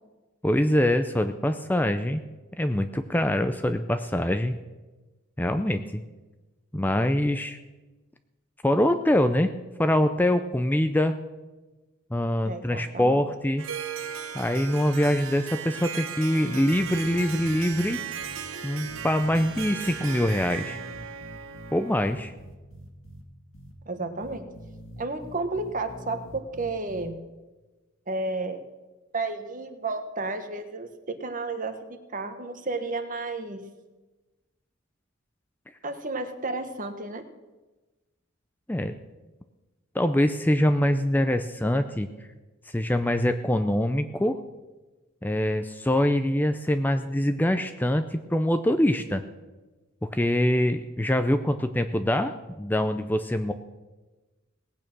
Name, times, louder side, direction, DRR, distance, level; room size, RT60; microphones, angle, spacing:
voice 1, 0.4-2.2 2.6-4.6 5.4-6.0 6.7-7.6 8.6-9.5 9.8-11.1 12.1-13.6 14.3-18.0 18.6-20.8 21.7-22.3 38.7-39.0 39.9-42.1 42.7-44.4 45.2-49.2 50.0-53.5, left 1 dB, 10° left, 8 dB, 0.5 m, -24 dB
voice 2, 12.4-13.2 23.9-24.5 25.0-27.2 28.1-28.6 29.1-33.6 35.8-37.2, right 3 dB, 40° right, 8 dB, 1.4 m, -32 dB
Harp, 13.6-22.3, right 7 dB, 75° right, 1.1 m, -37 dB
sound 1, 16.7-17.9 18.2-18.4 18.9-21.7 22.0-23.2 23.5-23.7 24.2-27.1, equal, 75° left, 1.9 m, -45 dB
18.5 x 8.8 x 6.1 m, 1.2 s
head